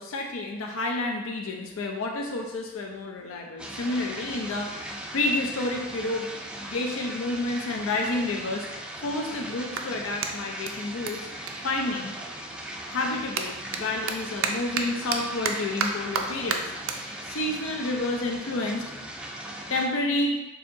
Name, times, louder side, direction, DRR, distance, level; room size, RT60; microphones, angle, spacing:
voice 1, 0.0-6.3 6.7-8.7 9.0-11.3 11.6-12.1 12.9-16.7 17.2-18.9 19.7-20.4, left 2 dB, 90° left, 1 dB, 0.5 m, -29 dB
sound 1, 3.6-19.9, right 1 dB, 5° right, 0.4 m, -39 dB
Clapping, 8.4-12.4 12.7-19.4, right 5 dB, 75° right, 0.4 m, -34 dB
6.7 x 2.8 x 2.6 m, 1.0 s
head